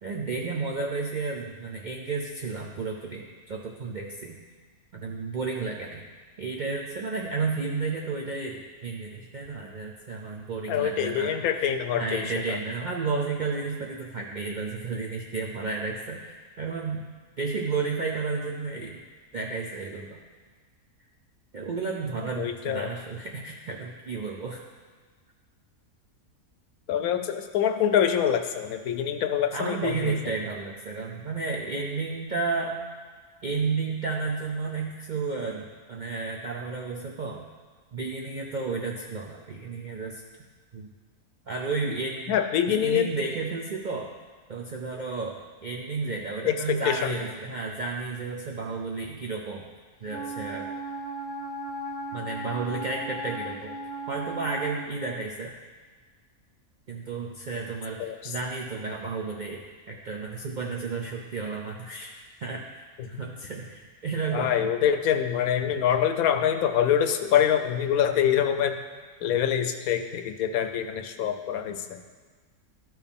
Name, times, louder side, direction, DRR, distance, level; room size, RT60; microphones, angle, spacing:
voice 1, 0.0-4.4 4.9-6.0 6.4-11.7 12.0-17.0 17.4-19.0 19.3-20.2 21.5-24.6 29.5-32.8 33.4-37.5 37.9-40.2 40.7-40.9 41.5-42.4 42.7-44.1 44.5-49.7 50.0-50.7 52.1-53.7 54.1-55.5 56.9-64.5 65.9-66.0, right 4 dB, 60° right, -1 dB, 0.5 m, -32 dB
voice 2, 10.7-12.6 22.4-22.9 26.9-30.1 42.3-43.1 46.4-47.1 58.0-58.3 64.3-68.8 69.2-72.0, left 9 dB, 80° left, 7 dB, 1.1 m, -25 dB
Wind instrument woodwind instrument, 50.1-54.9, right 2 dB, 10° left, 0.7 m, -36 dB
12.5 x 4.6 x 3.5 m, 1.5 s
omnidirectional pair, 1.5 m